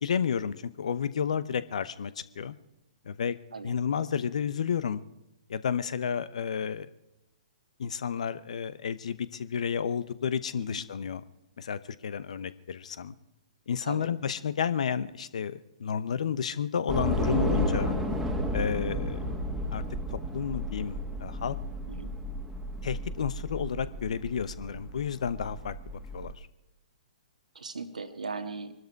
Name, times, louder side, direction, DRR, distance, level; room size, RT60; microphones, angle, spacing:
voice 1, 0.0-2.6 3.1-3.4 3.6-5.0 5.5-6.9 7.8-11.2 11.6-13.2 13.7-18.0 18.5-19.8 20.1-21.6 22.8-26.5, left 7 dB, 60° left, 15 dB, 0.9 m, -31 dB
Train / Subway metro underground, 16.9-26.3, equal, 5° right, 1.9 m, -32 dB
voice 2, 21.9-22.2 27.5-28.7, right 4 dB, 75° right, 7 dB, 1.7 m, -38 dB
23.5 x 12.5 x 4.7 m, 0.95 s
figure-of-eight pair, 120°, 4 cm